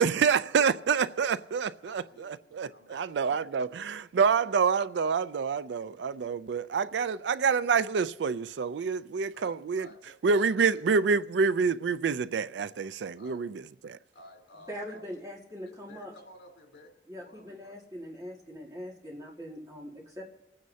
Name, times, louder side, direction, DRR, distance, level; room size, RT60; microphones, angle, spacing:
voice 1, 0.0-9.9 10.2-13.5 13.8-14.0, right 5 dB, 80° right, 0.4 m, -27 dB
voice 2, 1.8-3.3 4.2-4.4 9.3-10.1 13.2-13.5 14.1-15.0 15.6-17.8, left 1 dB, 80° left, 3.4 m, -54 dB
voice 3, 14.7-16.1 17.1-20.3, equal, 20° right, 1.9 m, -42 dB
27.5 x 9.4 x 2.8 m
head